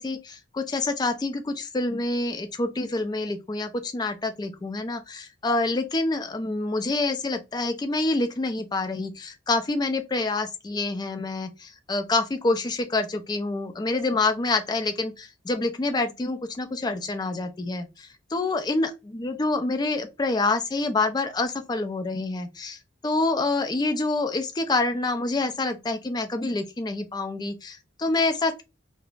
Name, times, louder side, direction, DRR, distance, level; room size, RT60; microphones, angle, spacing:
voice 1, 0.0-22.8 23.0-28.6, left 2 dB, 20° left, 0.3 m, -27 dB
2.4 x 2.0 x 3.1 m
head